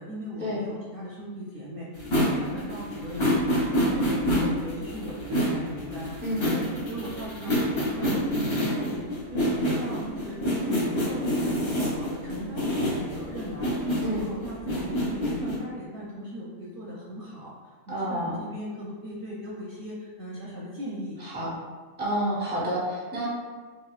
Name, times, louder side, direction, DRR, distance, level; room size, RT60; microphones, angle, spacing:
voice 1, 0.0-10.4 10.6-17.5 17.9-21.2, equal, 60° right, -5 dB, 0.6 m, -38 dB
sound 1, 2.0-15.6, equal, 35° left, 0.5 m, -27 dB
voice 2, 17.9-18.4 21.2-21.5 22.0-23.3, right 1 dB, 10° right, -5 dB, 0.6 m, -29 dB
4.1 x 2.2 x 2.3 m, 1.4 s
omnidirectional pair, 1.2 m